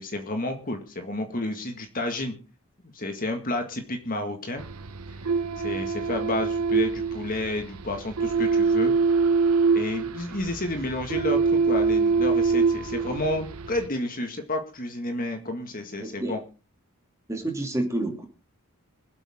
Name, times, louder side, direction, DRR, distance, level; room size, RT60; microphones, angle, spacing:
voice 1, 0.0-2.3 2.9-4.6 5.6-8.9 9.7-16.4, left 1 dB, 40° left, 5 dB, 2.0 m, -31 dB
sound 1, 4.6-13.9, right 4 dB, 85° right, 1.0 m, -25 dB
voice 2, 16.0-16.4 17.3-18.3, right 1 dB, 15° right, 2 dB, 2.8 m, -29 dB
25.0 x 8.3 x 3.7 m, 0.34 s
head